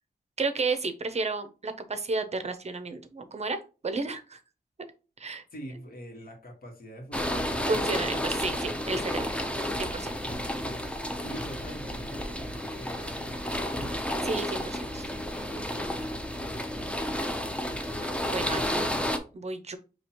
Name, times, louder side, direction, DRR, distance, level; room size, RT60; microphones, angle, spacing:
voice 1, 0.4-4.4 4.8-4.9 5.2-5.4 7.7-9.3 9.8-10.1 14.2-15.0 15.5-16.0 18.3-18.9 19.3-19.8, right 3 dB, 45° right, 9 dB, 0.6 m, -32 dB
voice 2, 5.5-8.0 11.2-13.9, equal, 65° left, 1 dB, 1.6 m, -45 dB
sound 1, 7.1-19.2, left 1 dB, 5° left, 0.6 m, -31 dB
5.9 x 2.8 x 2.9 m, 0.33 s
wide cardioid pair, 125°, 16 cm